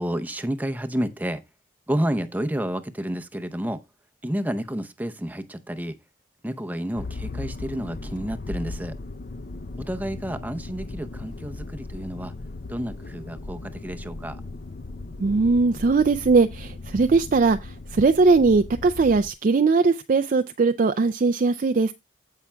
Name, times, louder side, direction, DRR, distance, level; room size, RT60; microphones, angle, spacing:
voice 1, 0.0-1.4 1.9-3.8 4.2-6.0 6.4-9.0 9.8-12.3 12.7-14.4, equal, 10° right, 0.6 m, -30 dB
Motor vehicle (road), 6.9-19.3, left 2 dB, 50° left, 0.6 m, -37 dB
voice 2, 15.2-21.9, right 4 dB, 45° right, 0.4 m, -20 dB
15.5 x 5.7 x 2.2 m
head